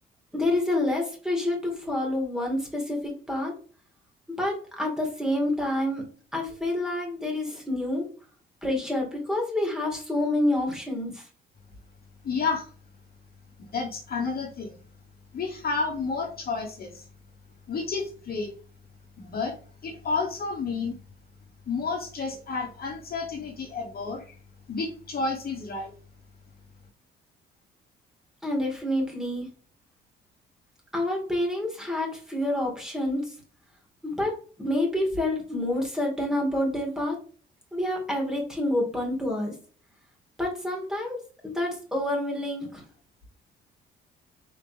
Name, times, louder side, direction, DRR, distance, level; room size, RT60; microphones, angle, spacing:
voice 1, 0.3-3.5 4.3-6.0 6.3-8.1 8.6-11.2 28.4-29.5 30.9-33.3 34.0-37.2 37.7-39.6 40.4-41.2 41.5-42.8, left 1 dB, 5° right, 0 dB, 2.1 m, -28 dB
voice 2, 12.2-12.7 13.6-14.8 15.3-17.0 17.7-18.5 19.2-19.6 19.8-21.0 21.7-24.4 24.7-25.9, left 4 dB, 50° left, 1 dB, 1.2 m, -31 dB
4.4 x 3.3 x 3.4 m, 0.40 s
cardioid pair, 90°, 20 cm